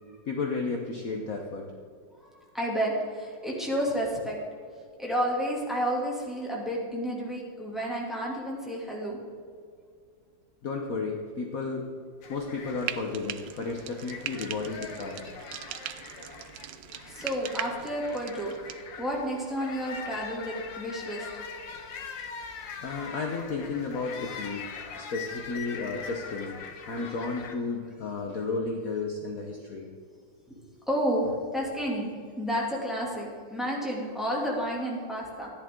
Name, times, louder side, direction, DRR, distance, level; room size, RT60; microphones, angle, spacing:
voice 1, 0.3-1.7 10.6-11.8 12.3-15.2 16.2-16.3 22.8-24.7 25.0-26.6 26.9-29.9, left 4 dB, 55° left, 2 dB, 1.2 m, -33 dB
voice 2, 2.2-4.4 5.0-9.2 17.1-21.3 30.5-30.6 30.9-32.1 32.4-35.5, equal, ahead, -3 dB, 2.4 m, -31 dB
sound 1, 12.2-27.5, left 5 dB, 70° left, 1.7 m, -42 dB
Frying (food), 12.8-18.8, right 12 dB, 75° right, 1.1 m, -40 dB
13.5 x 11.0 x 3.7 m, 2.1 s
omnidirectional pair, 2.1 m